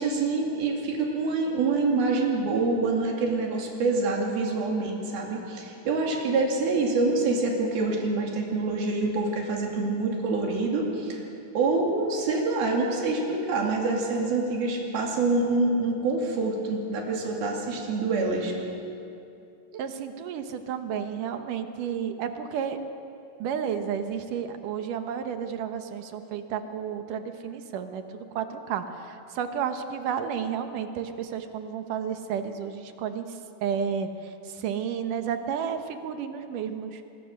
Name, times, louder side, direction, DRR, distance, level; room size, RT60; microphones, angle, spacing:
voice 1, 0.0-11.2 11.5-18.5, right 3 dB, 85° right, -1 dB, 4.4 m, -26 dB
voice 2, 19.7-22.8 23.4-33.3 33.6-37.1, right 7 dB, 70° right, 7 dB, 2.5 m, -32 dB
24.5 x 21.5 x 6.5 m, 2.7 s
omnidirectional pair, 4.2 m